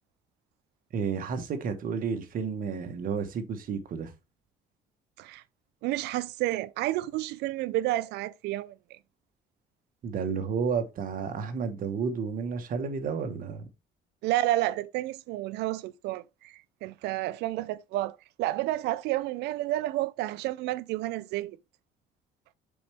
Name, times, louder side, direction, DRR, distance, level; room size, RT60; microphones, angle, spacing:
voice 1, 0.9-4.1 10.0-13.7, right 6 dB, 55° right, 1.3 m, -31 dB
voice 2, 5.8-9.0 14.2-21.6, right 16 dB, 85° right, 0.5 m, -30 dB
6.9 x 4.3 x 3.4 m
cardioid pair, 110°, 17 cm